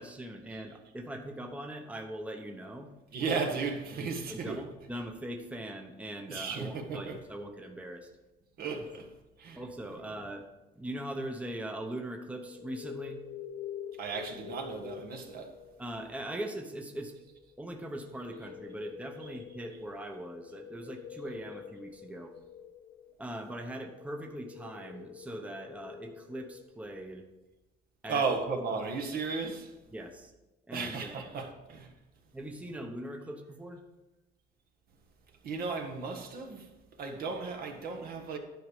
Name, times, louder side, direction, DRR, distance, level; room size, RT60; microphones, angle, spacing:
voice 1, 0.0-2.9 4.3-8.1 8.8-8.9 9.6-10.5 10.7-13.2 15.8-17.1 17.6-22.3 23.2-27.3 28.0-28.2 29.9-30.3 30.7-31.2 32.3-33.8, right 1 dB, 10° right, 0.8 m, -41 dB
voice 2, 3.1-4.6 6.3-7.2 8.6-9.1 9.4-9.6 14.0-15.5 28.1-29.7 30.7-31.9 35.4-36.7 37.0-38.4, right 4 dB, 65° right, 1.5 m, -35 dB
sound 1, 12.5-26.6, left 8 dB, 85° left, 0.6 m, -47 dB
10.5 x 5.0 x 4.9 m
cardioid pair, 110°, 17 cm